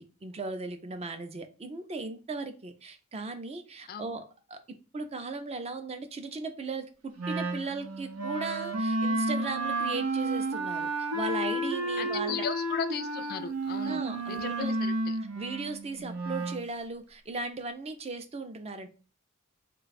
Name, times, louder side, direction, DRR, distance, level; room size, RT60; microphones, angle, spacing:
voice 1, 0.0-4.6 4.9-12.5 13.8-14.8 15.3-18.9, right 3 dB, 30° right, 0.5 m, -37 dB
Wind instrument woodwind instrument, 7.2-16.6, right 2 dB, 85° right, 0.6 m, -31 dB
voice 2, 12.0-14.9, left 6 dB, 45° left, 0.3 m, -36 dB
3.3 x 2.3 x 4.0 m
head